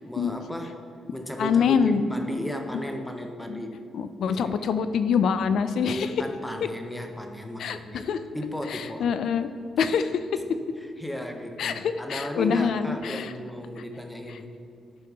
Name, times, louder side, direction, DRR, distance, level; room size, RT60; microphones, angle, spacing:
voice 1, 0.0-0.8 1.1-3.8 4.2-4.7 5.8-9.1 11.0-14.5, left 1 dB, 5° left, 4 dB, 0.5 m, -35 dB
voice 2, 1.4-2.0 3.5-3.6 3.9-6.1 7.6-8.2 8.7-9.5 9.8-10.1 11.6-13.3, left 6 dB, 60° left, 11 dB, 0.3 m, -25 dB
11.5 x 4.7 x 3.5 m, 2.6 s
cardioid pair, 175°, 0 cm